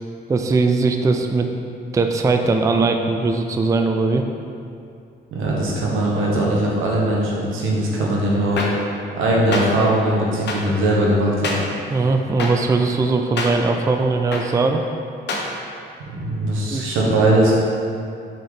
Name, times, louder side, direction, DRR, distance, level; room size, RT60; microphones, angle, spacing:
voice 1, 0.3-1.5 1.9-4.2 8.0-8.1 11.9-14.8 15.3-15.4 16.7-16.9, right 3 dB, 15° right, 5 dB, 0.4 m, -20 dB
voice 2, 5.3-8.7 9.1-11.5 16.1-17.5, right 1 dB, 85° right, -4 dB, 1.3 m, -20 dB
sound 1, 8.6-8.7 9.5-9.6 10.5-10.6 11.4-11.6 12.4-12.5 13.4-13.5 14.3-14.4 15.3-15.4, left 4 dB, 60° left, 1.0 m, -24 dB
6.1 x 4.4 x 3.8 m, 2.5 s
cardioid pair, 90°, 20 cm